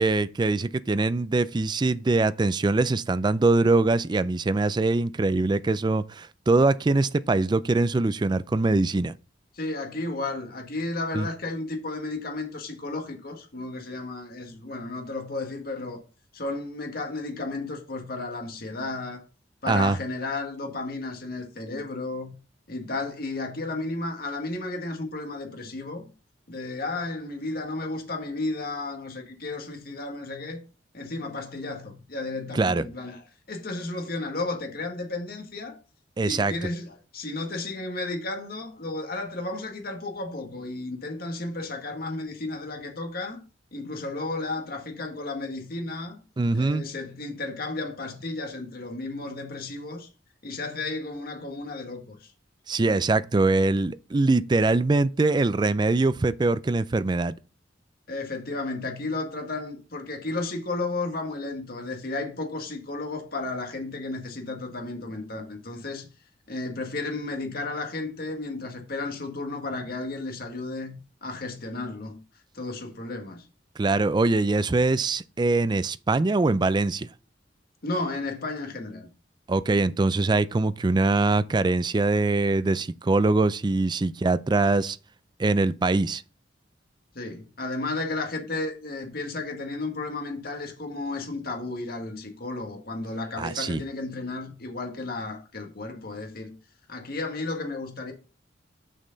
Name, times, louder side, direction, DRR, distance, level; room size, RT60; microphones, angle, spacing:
voice 1, 0.0-9.1 11.1-11.3 19.7-20.0 32.5-32.8 36.2-36.6 46.4-46.8 52.7-57.3 73.8-77.1 79.5-85.0 85.4-86.2 93.4-93.8, right 3 dB, 25° right, 0.3 m, -23 dB
voice 2, 9.5-16.0 16.3-19.2 19.6-22.3 22.7-26.1 26.5-30.6 30.9-35.8 36.2-43.4 43.7-46.2 46.5-50.1 50.4-52.3 58.1-66.1 66.5-72.2 72.5-73.4 77.8-79.1 87.2-96.5 96.9-98.1, left 2 dB, 55° left, 1.8 m, -33 dB
6.4 x 6.3 x 3.9 m
head